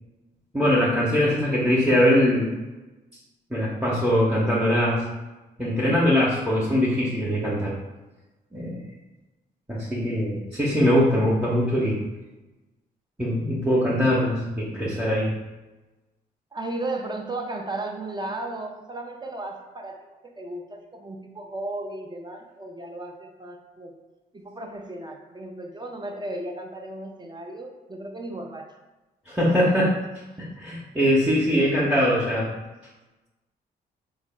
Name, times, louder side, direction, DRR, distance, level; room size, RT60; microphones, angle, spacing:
voice 1, 0.5-2.5 3.5-5.0 5.6-7.7 8.5-8.8 9.7-12.0 13.2-15.3 29.3-30.0 30.4-32.5, equal, 5° right, -7 dB, 0.9 m, -22 dB
voice 2, 16.5-23.9 24.3-28.7, right 2 dB, 20° right, 3 dB, 0.6 m, -35 dB
3.6 x 2.1 x 3.6 m, 1.1 s
supercardioid pair, 50°, 20 cm